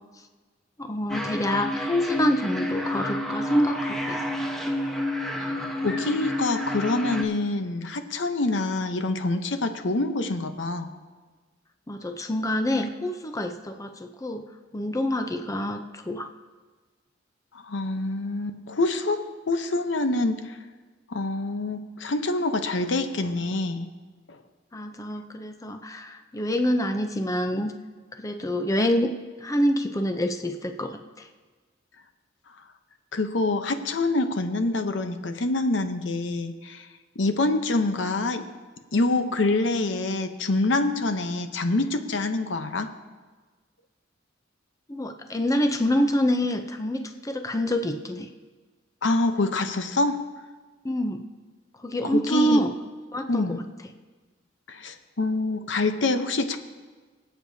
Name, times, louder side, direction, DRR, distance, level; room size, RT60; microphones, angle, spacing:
voice 1, 0.8-4.2 11.9-14.4 14.7-16.3 24.7-27.7 28.2-29.1 29.4-31.3 44.9-48.3 50.8-51.2 51.8-52.7 53.1-53.6, equal, 15° left, 6 dB, 0.6 m, -26 dB
sound 1, 1.1-7.2, left 1 dB, ahead, 1.0 m, -30 dB
voice 2, 5.8-10.9 17.5-20.6 21.1-23.9 24.3-24.4 33.1-36.9 37.2-38.6 38.9-42.9 49.0-50.3 52.0-52.7 53.3-53.6 54.7-56.6, left 2 dB, 70° left, 8 dB, 0.8 m, -26 dB
24.0 x 8.3 x 2.8 m, 1.4 s
head